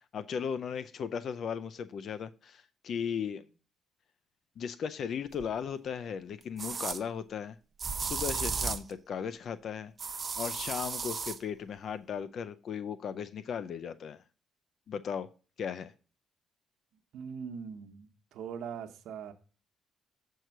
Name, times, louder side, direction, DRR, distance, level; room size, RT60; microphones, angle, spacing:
voice 1, 0.1-3.4 4.6-7.6 8.0-9.9 10.4-14.2 14.9-15.3 15.6-15.9, left 7 dB, 60° left, 0.5 m, -36 dB
sound 1, 5.4-5.5 6.6-7.0 7.8-8.9 10.0-11.4, right 5 dB, 40° right, 0.8 m, -34 dB
voice 2, 17.1-19.3, right 7 dB, 80° right, 1.0 m, -41 dB
7.9 x 4.7 x 5.9 m
cardioid pair, 90°, 0 cm